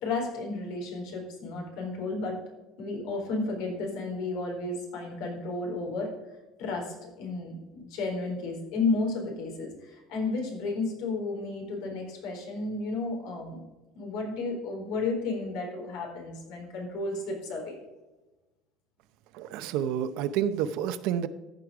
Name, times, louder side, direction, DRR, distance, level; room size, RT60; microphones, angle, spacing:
voice 1, 0.0-2.4 2.8-6.1 6.6-13.6 13.9-17.8, left 3 dB, 75° left, 1 dB, 3.9 m, -32 dB
voice 2, 19.3-21.3, right 9 dB, 70° right, 13 dB, 0.7 m, -29 dB
14.5 x 5.2 x 4.9 m, 1.1 s
cardioid pair, 155°, 0 cm